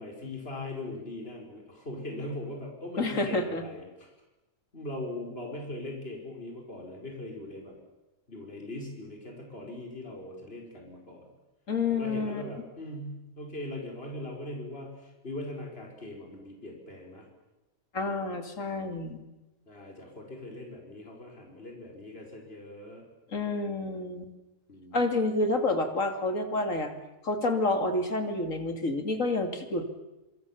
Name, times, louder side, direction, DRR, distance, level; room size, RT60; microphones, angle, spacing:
voice 1, 0.0-4.1 4.7-7.8 8.3-11.2 11.9-17.2 19.7-23.0 24.7-25.2, left 1 dB, 40° left, 0 dB, 5.1 m, -40 dB
voice 2, 3.0-3.6 11.7-12.4 17.9-19.2 23.3-24.3 24.9-26.9 27.2-29.8, left 2 dB, 60° left, 6 dB, 3.0 m, -29 dB
26.0 x 25.5 x 7.2 m, 1.0 s
omnidirectional pair, 1.5 m